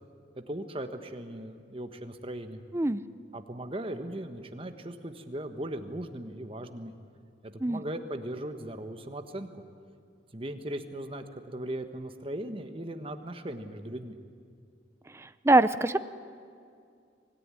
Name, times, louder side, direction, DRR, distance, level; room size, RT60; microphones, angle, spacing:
voice 1, 0.5-2.6 3.3-6.9 7.4-9.6 10.3-14.2, right 1 dB, 30° right, 7 dB, 1.4 m, -38 dB
voice 2, 15.2-16.1, right 2 dB, 15° right, 13 dB, 0.5 m, -24 dB
25.0 x 18.0 x 10.0 m, 2.4 s
head